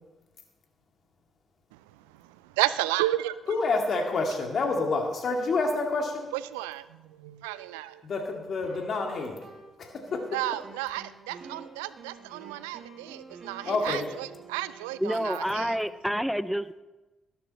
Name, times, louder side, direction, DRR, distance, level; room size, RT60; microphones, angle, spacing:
voice 1, 2.1-3.4 6.5-8.0 10.3-15.7, right 16 dB, 80° right, 16 dB, 0.3 m, -32 dB
voice 2, 3.5-6.3 8.0-9.4 9.8-9.9 13.6-14.0, left 3 dB, 55° left, 3 dB, 2.1 m, -28 dB
sound 1, 8.6-9.8 10.1-16.0, right 5 dB, 50° right, 2.3 m, -48 dB
voice 3, 15.0-16.7, equal, ahead, 15 dB, 0.6 m, -28 dB
12.5 x 12.0 x 4.2 m, 1.1 s
hypercardioid pair, 40°, 0 cm